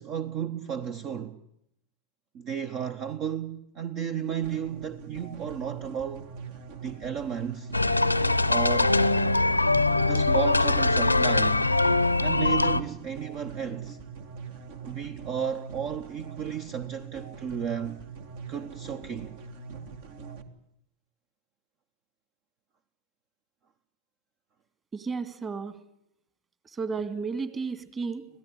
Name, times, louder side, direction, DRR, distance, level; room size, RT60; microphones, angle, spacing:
voice 1, 0.0-1.4 2.3-6.2 6.8-7.7 8.5-9.0 10.0-11.8 12.2-14.0 14.8-18.0 18.5-19.4, right 8 dB, 35° right, 1.1 m, -33 dB
sound 1, 4.4-20.4, right 5 dB, 55° right, 2.2 m, -43 dB
sound 2, 7.7-12.8, left 2 dB, 85° left, 0.9 m, -22 dB
voice 2, 24.9-25.8 26.7-28.3, right 4 dB, 20° right, 2.1 m, -33 dB
26.0 x 17.0 x 9.9 m
figure-of-eight pair, 90°, 0 cm